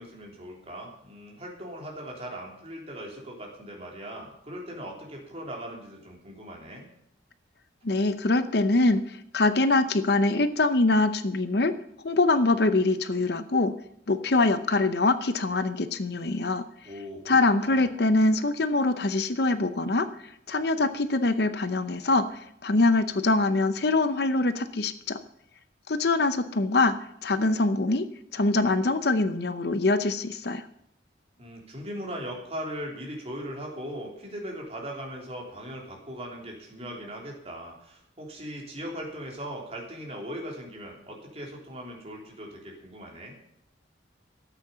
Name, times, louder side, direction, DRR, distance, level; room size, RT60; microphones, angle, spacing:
voice 1, 0.0-6.9 16.8-17.4 17.6-17.9 31.4-43.4, equal, 35° right, -1 dB, 3.2 m, -39 dB
voice 2, 7.8-11.7 12.0-13.7 14.1-16.6 17.3-20.1 20.5-22.2 22.6-25.2 25.9-26.9 27.2-28.1 28.3-30.6, left 2 dB, 60° left, 11 dB, 0.7 m, -24 dB
13.0 x 8.4 x 6.8 m, 0.74 s
head